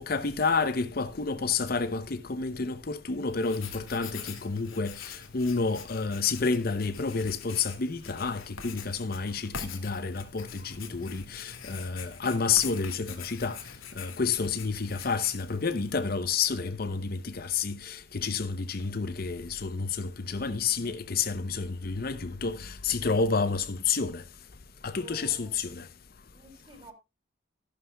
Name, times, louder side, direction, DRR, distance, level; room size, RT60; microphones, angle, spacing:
voice 1, 0.0-13.7 13.9-24.2 24.8-25.9, left 4 dB, 45° left, 0.7 m, -30 dB
Writing, 3.3-16.1, left 7 dB, 80° left, 2.4 m, -45 dB
voice 2, 24.9-25.6 26.2-26.9, right 1 dB, 25° right, 4.0 m, -50 dB
14.5 x 11.5 x 2.2 m
head